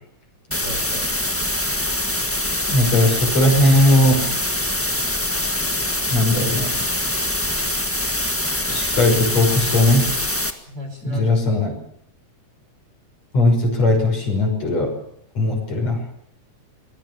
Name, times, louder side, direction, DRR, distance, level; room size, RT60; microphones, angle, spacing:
sound 1, 0.5-10.5, left 1 dB, 10° left, 0.7 m, -24 dB
voice 1, 0.5-1.1 10.7-11.3, left 1 dB, 35° right, 3 dB, 5.9 m, -34 dB
voice 2, 2.7-4.4 6.1-6.7 8.7-10.1 11.0-11.7 13.3-14.9 15.4-16.0, left 1 dB, 60° left, 2 dB, 7.1 m, -18 dB
24.0 x 20.5 x 7.0 m, 0.69 s
omnidirectional pair, 3.4 m